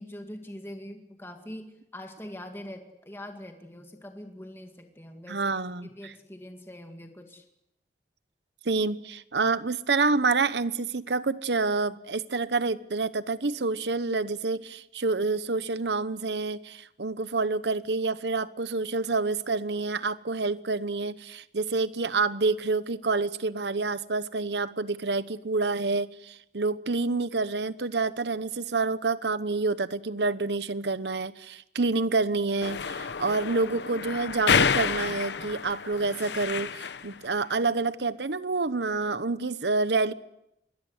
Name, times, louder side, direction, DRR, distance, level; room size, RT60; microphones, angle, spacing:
voice 1, 0.0-5.5 5.8-7.4, left 1 dB, 15° left, 2.1 m, -43 dB
voice 2, 5.3-6.1 8.6-40.1, right 3 dB, 85° right, 1.0 m, -28 dB
sound 1, 32.6-37.2, left 6 dB, 85° left, 0.9 m, -29 dB
27.0 x 22.0 x 8.0 m
head